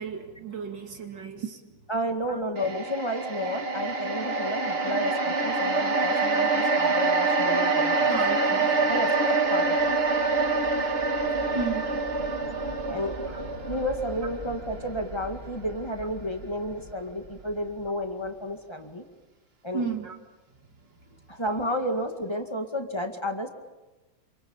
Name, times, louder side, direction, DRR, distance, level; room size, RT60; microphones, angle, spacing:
voice 1, 0.0-1.6 2.3-2.4 8.1-8.8 11.5-12.0 13.3-13.4 19.7-20.2, right 5 dB, 65° right, 4 dB, 3.0 m, -33 dB
voice 2, 1.9-8.1 8.5-9.9 12.9-13.2 13.7-19.1 19.6-19.9 21.3-23.5, equal, 15° left, 5 dB, 2.0 m, -31 dB
sound 1, 2.6-16.9 17.3-17.4, right 3 dB, 30° right, 1.8 m, -26 dB
28.0 x 25.5 x 7.3 m, 1.2 s
omnidirectional pair, 2.1 m